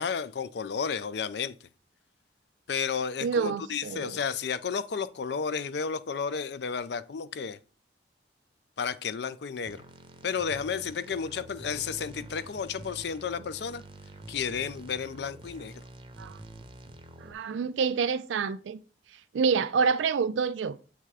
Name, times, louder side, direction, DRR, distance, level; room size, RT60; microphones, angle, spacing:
voice 1, 0.0-1.5 2.7-7.6 8.8-9.8 10.2-13.8 14.3-15.8, left 6 dB, 65° left, 0.4 m, -32 dB
voice 2, 3.2-4.2 16.2-16.3 17.2-18.8 19.3-20.8, right 5 dB, 85° right, 0.4 m, -27 dB
sound 1, 9.6-17.3, right 2 dB, 25° right, 0.7 m, -47 dB
7.6 x 3.3 x 4.8 m
head